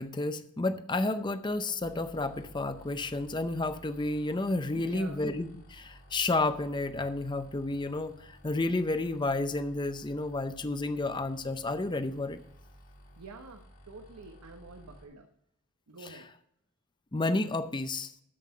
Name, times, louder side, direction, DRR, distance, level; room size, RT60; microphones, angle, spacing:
voice 1, 0.0-12.4 17.1-18.1, left 2 dB, 20° left, 10 dB, 0.6 m, -31 dB
sound 1, 1.8-15.0, equal, 70° left, 2.7 m, -55 dB
voice 2, 4.7-5.2 13.2-15.3 15.9-16.3, right 3 dB, 90° right, 4 dB, 1.0 m, -47 dB
13.0 x 5.7 x 5.6 m, 0.73 s
head